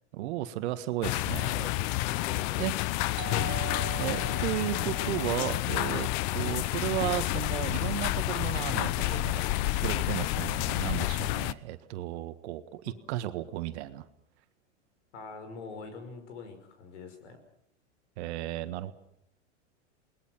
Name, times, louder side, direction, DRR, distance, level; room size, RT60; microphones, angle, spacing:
voice 1, 0.1-1.7 2.6-2.8 3.5-14.1 18.2-18.9, right 14 dB, 65° right, 11 dB, 1.7 m, -34 dB
sound 1, 1.0-11.5, left 18 dB, 50° left, 0.8 m, -30 dB
voice 2, 1.5-2.7 15.1-17.4, left 4 dB, 75° left, 7 dB, 5.7 m, -44 dB
Doorbell, 3.2-7.8, right 12 dB, 30° right, 1.7 m, -43 dB
29.0 x 20.5 x 6.0 m, 0.77 s
hypercardioid pair, 100°, 36 cm